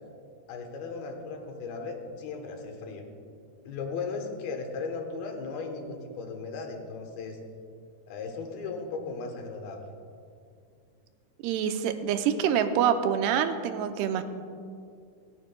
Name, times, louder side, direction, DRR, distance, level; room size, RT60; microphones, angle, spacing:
voice 1, 0.5-3.1 3.6-7.4 8.1-9.9, left 4 dB, 75° left, 4 dB, 2.8 m, -36 dB
voice 2, 11.4-14.2, right 8 dB, 85° right, 8 dB, 2.6 m, -26 dB
27.5 x 9.5 x 2.3 m, 2.3 s
omnidirectional pair, 4.7 m